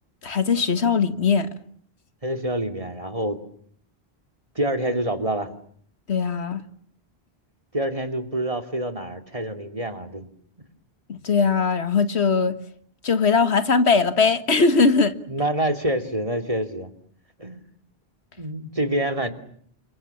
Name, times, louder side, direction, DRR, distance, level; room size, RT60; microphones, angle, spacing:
voice 1, 0.2-1.5 6.1-6.6 11.1-12.6 13.0-15.2, left 5 dB, 85° left, 1.9 m, -20 dB
voice 2, 2.2-3.4 4.5-5.5 7.7-10.3 15.3-16.9 17.4-17.6 18.4-19.3, right 1 dB, 30° right, 2.9 m, -26 dB
29.5 x 26.0 x 7.3 m
omnidirectional pair, 1.1 m